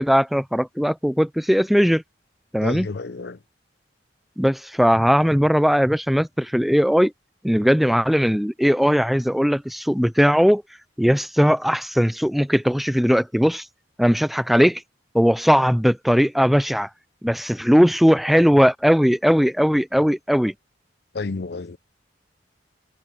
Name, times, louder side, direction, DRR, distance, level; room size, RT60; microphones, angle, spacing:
voice 1, 0.0-2.0 2.5-2.9 4.4-7.1 7.4-10.6 11.0-13.7 14.0-14.8 15.1-16.9 17.2-20.5, equal, ahead, 0.5 m, -19 dB
voice 2, 2.6-3.4 21.1-21.8, left 3 dB, 60° left, 0.6 m, -30 dB
head